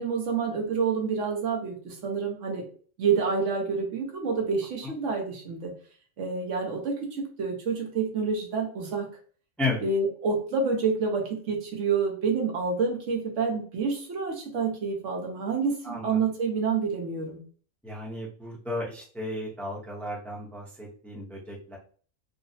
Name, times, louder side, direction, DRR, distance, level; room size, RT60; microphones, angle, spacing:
voice 1, 0.0-2.7 3.0-5.7 6.2-9.1 9.8-17.4, right 5 dB, 80° right, 1 dB, 1.1 m, -28 dB
voice 2, 15.8-16.2 17.8-21.8, left 2 dB, ahead, -4 dB, 0.6 m, -34 dB
3.8 x 2.0 x 2.6 m, 0.43 s
omnidirectional pair, 1.3 m